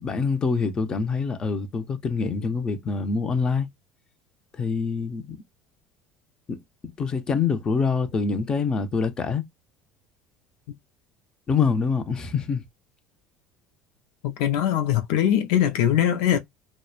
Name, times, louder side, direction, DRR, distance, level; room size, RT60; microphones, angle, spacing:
voice 1, 0.0-3.7 4.6-5.4 6.5-6.6 7.0-9.4 11.5-12.6, left 5 dB, 30° left, 0.6 m, -25 dB
voice 2, 14.2-16.4, left 10 dB, 80° left, 0.4 m, -21 dB
3.0 x 2.1 x 2.3 m
supercardioid pair, 115°, 3 cm